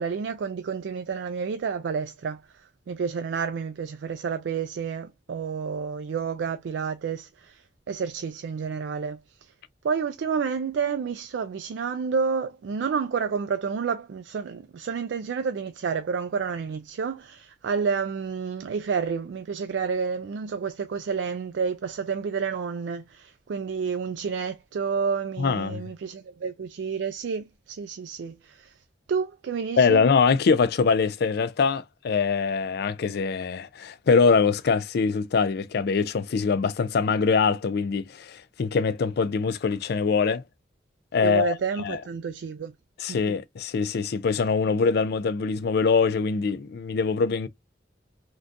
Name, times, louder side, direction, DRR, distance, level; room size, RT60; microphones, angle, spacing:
voice 1, 0.0-2.4 2.9-7.6 7.9-9.2 9.8-28.7 29.1-30.0 41.2-42.7, right 6 dB, 75° right, 0.3 m, -30 dB
voice 2, 25.4-25.8 29.8-40.4 41.1-42.0 43.0-47.5, left 5 dB, 60° left, 0.4 m, -23 dB
3.7 x 2.3 x 2.5 m
head